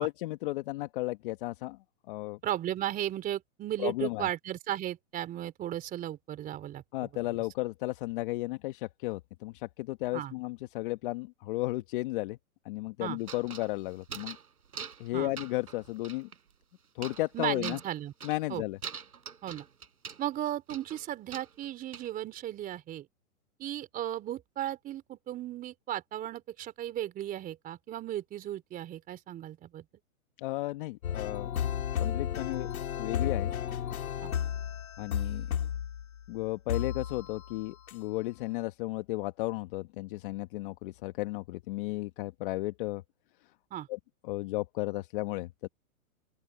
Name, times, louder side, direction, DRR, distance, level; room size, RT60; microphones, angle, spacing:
voice 1, 0.0-1.8 2.1-2.4 3.8-4.3 6.9-12.4 12.6-14.4 15.0-16.3 16.9-17.8 18.2-18.8 30.4-31.5 32.0-32.7 33.0-33.5 35.0-35.5 36.3-43.0 43.9-45.7, left 19 dB, 35° left, 1.2 m, -34 dB
voice 2, 2.4-6.8 10.1-10.3 13.0-13.2 15.1-15.3 17.3-18.1 18.5-18.6 19.4-19.6 20.2-23.1 23.6-29.8 34.2-34.3 43.7-43.9, right 12 dB, 20° right, 3.6 m, -35 dB
sound 1, 13.2-14.5 14.7-15.1 15.4-16.4 17.0-17.3 17.6-18.5 18.8-20.2 20.7-22.1, right 6 dB, 85° right, 6.6 m, -43 dB
sound 2, 31.0-36.2 36.7-37.6 37.9-38.0, left 9 dB, 75° left, 3.0 m, -33 dB
open air
hypercardioid pair, 145°, 43 cm